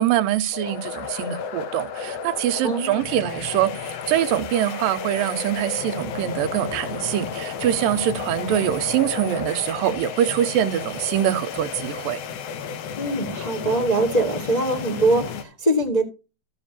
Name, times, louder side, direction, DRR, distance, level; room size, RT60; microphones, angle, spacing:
voice 1, 0.0-12.2, right 11 dB, 85° right, 2.4 m, -24 dB
sound 1, 0.5-15.4, left 7 dB, 80° left, 1.4 m, -33 dB
voice 2, 2.6-3.0 13.0-16.0, right 2 dB, 40° left, 0.5 m, -22 dB
14.0 x 7.2 x 2.9 m
omnidirectional pair, 4.2 m